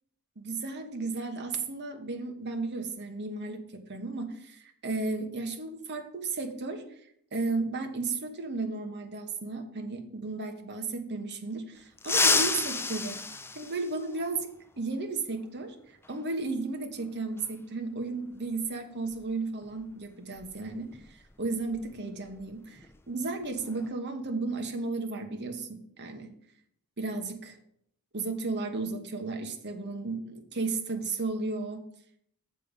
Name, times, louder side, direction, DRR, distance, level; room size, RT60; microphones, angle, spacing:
voice 1, 0.4-6.8 7.3-13.2 13.5-15.7 16.1-26.3 27.0-27.6 28.1-31.8, right 3 dB, 50° right, 5 dB, 1.2 m, -34 dB
sound 1, 12.0-14.4 16.0-16.1 17.4-17.5 19.1-19.3 19.6-19.8 20.3-22.5 22.8-23.0 23.4-23.9, left 4 dB, 10° left, 0.4 m, -30 dB
7.1 x 6.8 x 5.1 m, 0.70 s
head